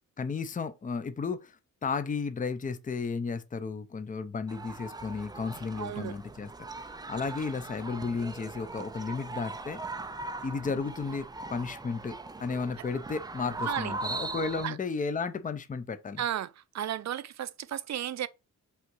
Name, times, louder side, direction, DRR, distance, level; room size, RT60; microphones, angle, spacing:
voice 1, 0.2-6.5 6.8-9.8 10.4-16.2, left 4 dB, 25° left, 0.6 m, -34 dB
sound 1, 4.5-14.7, right 3 dB, 15° right, 0.3 m, -40 dB
voice 2, 5.7-6.1 13.6-13.9 14.6-14.8 16.2-18.3, right 10 dB, 60° right, 0.6 m, -34 dB
5.7 x 3.8 x 6.0 m
wide cardioid pair, 150°, 32 cm